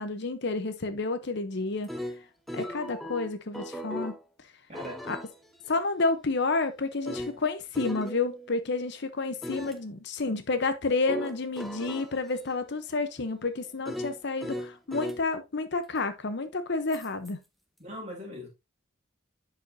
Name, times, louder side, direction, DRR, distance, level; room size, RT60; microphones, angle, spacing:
voice 1, 0.0-1.9 2.5-4.1 5.1-5.2 5.7-17.4, left 3 dB, 55° left, 0.8 m, -30 dB
sound 1, 1.6-4.2 4.7-8.8 9.4-9.8 11.1-15.2 16.9-17.3, equal, ahead, 0.7 m, -39 dB
voice 2, 4.7-5.0 17.8-18.5, equal, 30° right, 3.6 m, -40 dB
10.5 x 5.0 x 2.6 m
head